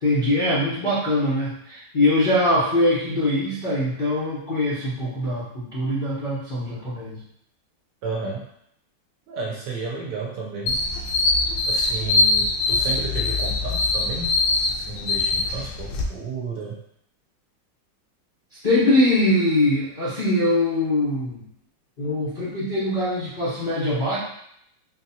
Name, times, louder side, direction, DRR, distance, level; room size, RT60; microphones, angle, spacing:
voice 1, 0.0-7.2 18.6-21.5 22.0-24.2, left 1 dB, 70° left, -9 dB, 0.4 m, -22 dB
voice 2, 8.0-8.5 9.3-10.8 11.7-14.4 14.7-16.8, right 4 dB, 70° right, -2 dB, 1.1 m, -32 dB
sound 1, 10.7-16.0, left 3 dB, 90° left, 1.5 m, -22 dB
4.4 x 2.8 x 2.7 m, 0.72 s
omnidirectional pair, 2.2 m